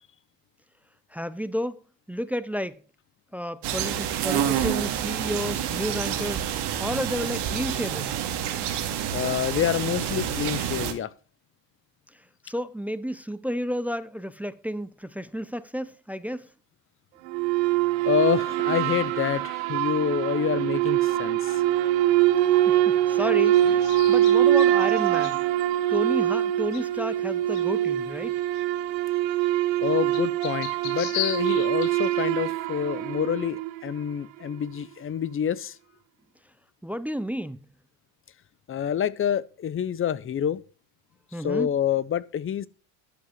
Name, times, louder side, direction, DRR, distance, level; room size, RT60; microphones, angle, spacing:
voice 1, 1.1-1.8 2.1-2.8 3.3-6.4 6.8-8.1 12.4-16.5 22.7-25.4 25.9-28.4 36.8-37.6 41.3-41.7, equal, 5° right, 0.5 m, -31 dB
sound 1, 3.6-10.9, right 10 dB, 55° right, 2.4 m, -28 dB
voice 2, 9.1-11.1 18.0-21.6 29.8-35.8 38.7-40.6 41.4-42.7, left 9 dB, 25° left, 0.7 m, -27 dB
sound 2, 17.3-33.9, right 13 dB, 85° right, 1.2 m, -23 dB
sound 3, 23.3-32.8, left 11 dB, 85° left, 2.7 m, -40 dB
11.5 x 7.5 x 5.9 m
supercardioid pair, 105°, 48 cm